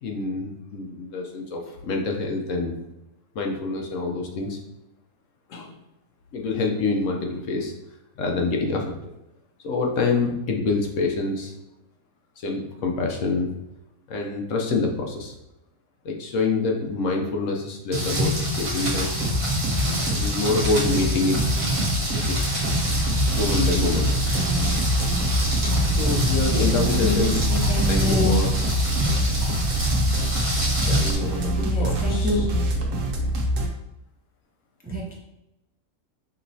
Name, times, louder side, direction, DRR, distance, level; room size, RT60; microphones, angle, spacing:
voice 1, 0.0-2.7 3.3-4.6 5.5-5.7 6.3-7.7 8.2-8.9 9.6-11.5 12.4-13.5 14.1-15.4 16.0-19.2 20.1-22.7 23.3-24.2 24.7-24.8 26.0-27.4 27.9-28.5 30.8-32.4, left 3 dB, 75° left, 1 dB, 1.1 m, -26 dB
Rain, 17.9-31.1, equal, 25° right, 1.0 m, -26 dB
sound 1, 19.1-33.7, equal, 75° right, 1.1 m, -25 dB
voice 2, 25.9-28.4 31.6-32.5 34.8-35.1, equal, 10° right, -3 dB, 0.5 m, -27 dB
5.3 x 3.0 x 2.7 m, 0.91 s
omnidirectional pair, 1.4 m